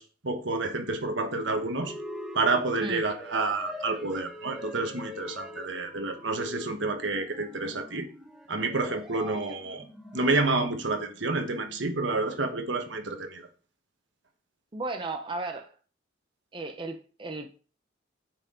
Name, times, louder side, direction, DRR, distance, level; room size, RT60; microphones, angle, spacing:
voice 1, 0.0-2.0 2.3-8.1 8.5-9.8 10.1-13.5, right 3 dB, 65° right, 1.2 m, -29 dB
sound 1, 1.3-10.7, left 1 dB, 5° right, 0.9 m, -44 dB
voice 2, 14.7-15.7 16.5-17.5, right 2 dB, 25° right, 0.6 m, -35 dB
8.8 x 4.4 x 3.7 m
head